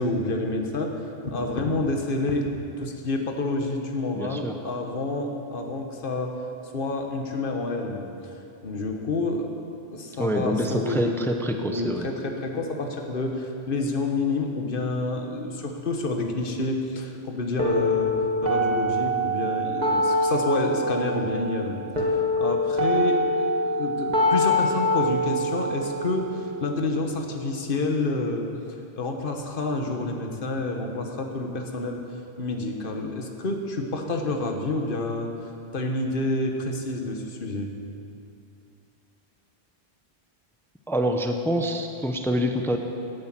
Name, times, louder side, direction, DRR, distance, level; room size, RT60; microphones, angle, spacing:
voice 1, 0.0-2.5 2.7-6.4 6.6-8.3 8.6-9.5 9.9-11.2 11.6-32.0 32.4-35.3 35.7-37.7, left 2 dB, 55° left, 3 dB, 1.6 m, -28 dB
voice 2, 4.1-4.5 10.2-12.1 40.9-42.8, equal, ahead, 4 dB, 0.9 m, -26 dB
sound 1, 17.6-27.6, equal, 40° right, 2.2 m, -25 dB
17.5 x 10.5 x 7.6 m, 2.6 s
omnidirectional pair, 1.1 m